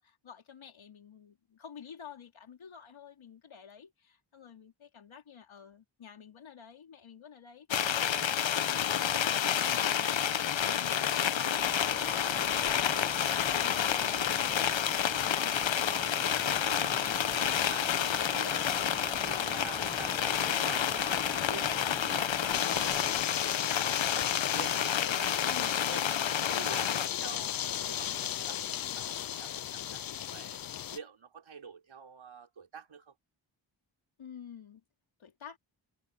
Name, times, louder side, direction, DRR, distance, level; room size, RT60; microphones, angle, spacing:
voice 1, 0.0-8.4 9.1-13.1 13.5-15.6 21.9-22.2 25.4-26.2 34.2-34.8 35.2-35.6, left 8 dB, 90° left, 3.7 m, -50 dB
sound 1, 7.7-27.1, left 9 dB, 70° left, 1.0 m, -29 dB
voice 2, 7.8-8.3 9.8-10.0 15.7-25.4 25.9-26.0 26.5-30.0 30.3-30.6 30.9-33.1, right 7 dB, 85° right, 4.1 m, -48 dB
sound 2, 11.6-23.2, left 2 dB, 10° left, 1.0 m, -45 dB
sound 3, 22.5-31.0, left 10 dB, 50° left, 0.5 m, -35 dB
cardioid pair, 65°, 46 cm